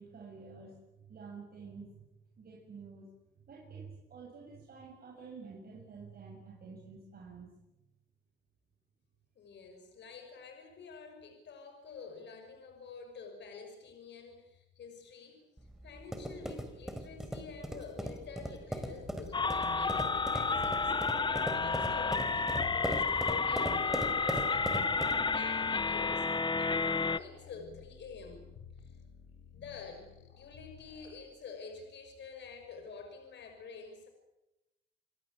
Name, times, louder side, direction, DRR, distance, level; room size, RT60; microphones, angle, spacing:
voice 1, 0.0-2.0 2.4-3.1 3.5-7.5, right 5 dB, 50° right, -1 dB, 7.3 m, -49 dB
voice 2, 9.4-20.9 21.3-26.3 26.6-28.5 28.8-29.0 29.5-34.1, left 5 dB, 60° left, 5 dB, 5.7 m, -48 dB
sound 1, 15.6-25.3, equal, ahead, 4.5 m, -39 dB
sound 2, 18.7-31.2, left 7 dB, 85° left, 4.8 m, -52 dB
sound 3, 19.3-27.2, left 4 dB, 25° left, 0.8 m, -31 dB
29.0 x 18.0 x 8.5 m, 0.98 s
cardioid pair, 90°, 20 cm